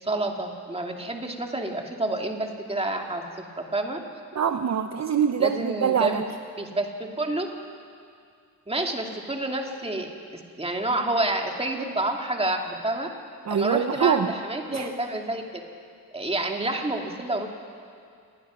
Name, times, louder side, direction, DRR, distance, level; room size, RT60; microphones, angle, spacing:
voice 1, 0.0-4.0 5.4-6.3 6.6-7.5 8.7-13.1 13.5-15.4 16.1-17.5, right 2 dB, 15° right, 2 dB, 2.1 m, -29 dB
voice 2, 4.3-6.2 13.5-14.3 14.7-14.9, right 7 dB, 50° right, 8 dB, 0.8 m, -24 dB
27.0 x 20.5 x 6.1 m, 2.3 s
wide cardioid pair, 145°, 35 cm